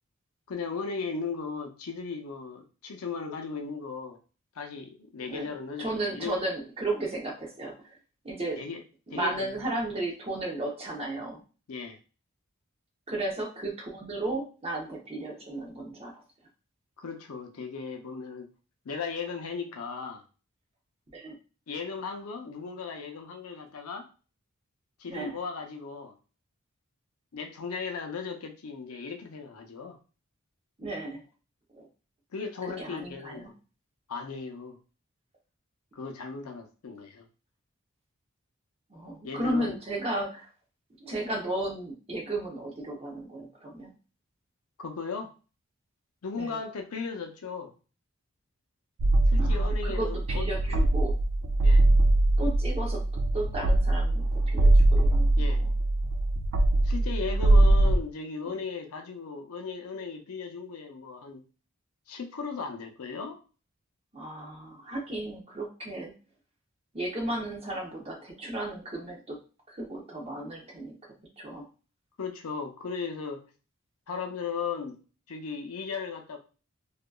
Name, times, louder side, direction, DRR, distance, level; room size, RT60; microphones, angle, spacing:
voice 1, 0.5-4.2 4.6-6.4 8.6-8.8 9.1-9.6 11.7-12.0 17.0-18.5 18.8-20.2 21.7-24.1 25.0-26.1 27.3-30.0 32.3-33.6 34.1-34.8 35.9-37.3 39.2-39.7 44.8-45.3 46.2-47.7 49.3-50.6 51.6-51.8 55.4-55.6 56.8-61.4 62.1-63.4 72.2-73.4 74.1-75.0 75.3-76.4, left 5 dB, 90° left, 4 dB, 0.5 m, -36 dB
voice 2, 5.8-8.0 8.2-8.6 9.1-11.4 13.1-16.2 21.1-21.3 25.1-25.3 30.8-31.2 31.7-31.9 32.7-33.5 38.9-40.5 41.0-43.9 46.3-46.6 49.4-51.2 52.4-53.0 53.3-55.3 55.6-55.7 57.3-57.9 58.4-58.6 64.1-66.1 66.9-69.4 69.7-71.0 71.4-71.7, right 1 dB, 25° right, -1 dB, 0.7 m, -34 dB
sound 1, 49.0-58.0, right 1 dB, 75° right, 0.3 m, -22 dB
2.8 x 2.3 x 2.2 m, 0.35 s
head